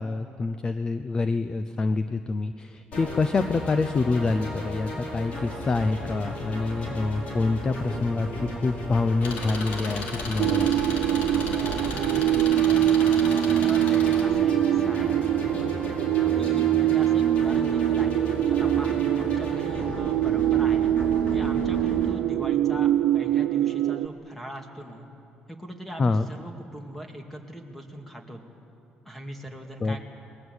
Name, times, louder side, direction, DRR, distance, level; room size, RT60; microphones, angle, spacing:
voice 1, 0.0-10.7 26.0-26.3 29.8-30.0, left 3 dB, 25° left, 11 dB, 0.6 m, -26 dB
sound 1, 2.9-22.1, left 1 dB, 45° left, 4.7 m, -35 dB
Engine, 9.2-14.2, left 3 dB, 75° left, 2.8 m, -36 dB
sound 2, 10.4-24.1, right 12 dB, 80° right, 0.6 m, -23 dB
voice 2, 11.5-12.9 13.6-15.2 16.4-18.1 18.5-20.9 21.3-25.1 25.5-28.4 29.0-30.1, right 1 dB, 5° left, 3 dB, 2.2 m, -41 dB
29.5 x 20.5 x 8.1 m, 2.7 s
cardioid pair, 165°, 3 cm